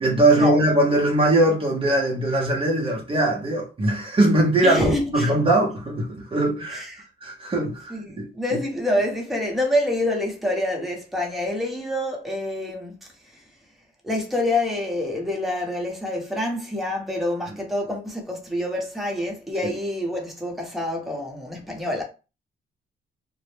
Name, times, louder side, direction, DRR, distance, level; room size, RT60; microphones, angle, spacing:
voice 1, 0.0-6.9 7.2-8.3 19.6-19.7, right 1 dB, 30° right, 0.7 m, -21 dB
voice 2, 4.6-5.3 6.7-7.0 7.9-13.4 14.0-22.0, left 1 dB, ahead, 0.9 m, -27 dB
2.0 x 2.0 x 3.1 m
cardioid pair, 90°, 20 cm